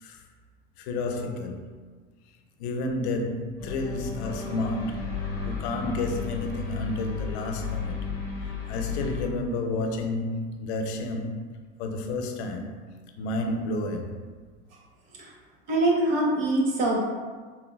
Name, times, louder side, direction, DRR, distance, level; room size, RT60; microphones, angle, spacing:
voice 1, 0.8-1.7 2.6-5.1 5.4-8.0 8.7-11.4 11.8-12.8 13.2-14.2, left 2 dB, 80° left, 0.5 m, -30 dB
sound 1, 3.6-9.2, left 5 dB, 10° left, 0.9 m, -33 dB
voice 2, 15.7-17.0, right 1 dB, 50° right, 0.8 m, -24 dB
3.7 x 2.1 x 2.3 m
supercardioid pair, 140°, 33 cm